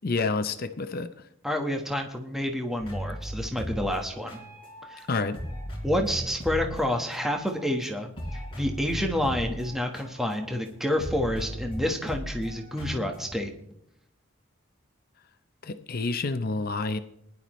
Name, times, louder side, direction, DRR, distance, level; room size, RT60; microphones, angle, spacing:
voice 1, 0.0-1.1 5.1-5.4 15.6-17.0, left 3 dB, 45° left, 10 dB, 0.6 m, -28 dB
voice 2, 1.4-4.4 4.8-5.1 5.8-13.5, left 1 dB, ahead, 3 dB, 1.2 m, -29 dB
sound 1, 2.8-5.0 5.3-7.8 8.1-13.3, equal, 25° left, 4.1 m, -37 dB
20.5 x 11.0 x 3.1 m, 0.75 s
head